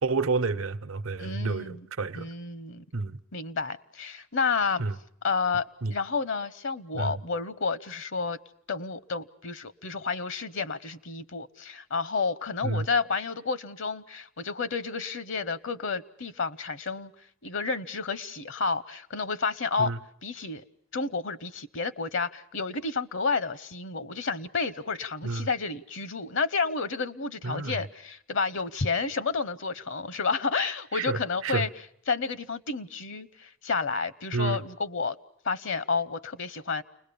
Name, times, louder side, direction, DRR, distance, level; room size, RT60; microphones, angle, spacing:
voice 1, 0.0-2.3 2.9-3.2 4.8-4.9 5.8-5.9 6.9-7.2 12.6-12.9 19.8-20.0 25.2-25.5 27.4-27.8 30.9-31.7 34.3-34.6, right 3 dB, 75° right, 1.0 m, -29 dB
voice 2, 1.2-1.9 2.2-2.8 3.3-4.8 5.2-8.4 8.7-17.1 17.4-19.9 20.2-20.6 20.9-31.7 32.1-35.2 35.4-36.8, left 4 dB, 60° left, 0.9 m, -30 dB
29.5 x 21.0 x 7.0 m
head